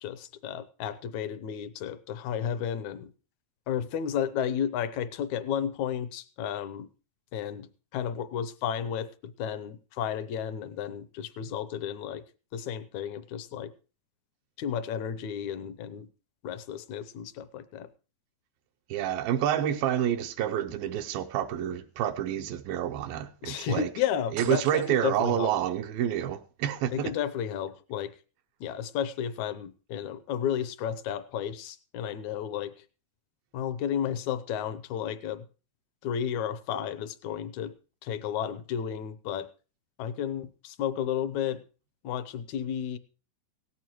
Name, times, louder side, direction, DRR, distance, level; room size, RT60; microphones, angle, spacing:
voice 1, 0.0-3.1 3.7-6.9 7.3-12.2 12.5-13.7 14.6-16.1 16.4-17.9 23.4-25.5 26.9-28.1 28.6-32.8 33.5-35.5 36.0-37.7 38.0-39.5 40.0-41.6 42.0-43.0, left 9 dB, 75° left, 1.8 m, -32 dB
voice 2, 18.9-23.9 24.3-27.1, right 11 dB, 90° right, 2.6 m, -28 dB
sound 1, 24.4-25.3, right 9 dB, 75° right, 1.4 m, -42 dB
17.5 x 14.0 x 3.0 m
omnidirectional pair, 4.1 m